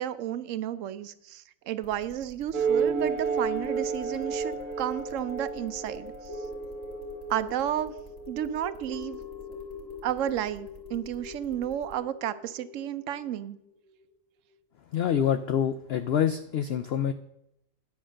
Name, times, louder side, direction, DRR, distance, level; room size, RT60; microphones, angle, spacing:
voice 1, 0.0-6.1 7.3-7.9 8.3-9.2 10.0-13.6, right 11 dB, 65° right, 13 dB, 0.9 m, -32 dB
sound 1, 1.8-11.9, right 2 dB, 25° left, 2.1 m, -51 dB
sound 2, 2.5-7.5, right 6 dB, 85° right, 1.3 m, -31 dB
sound 3, 3.7-14.0 14.5-14.6, left 4 dB, 45° left, 1.4 m, -43 dB
voice 2, 14.9-17.1, left 9 dB, 75° left, 10 dB, 0.5 m, -26 dB
10.0 x 5.9 x 6.3 m, 0.81 s
omnidirectional pair, 1.6 m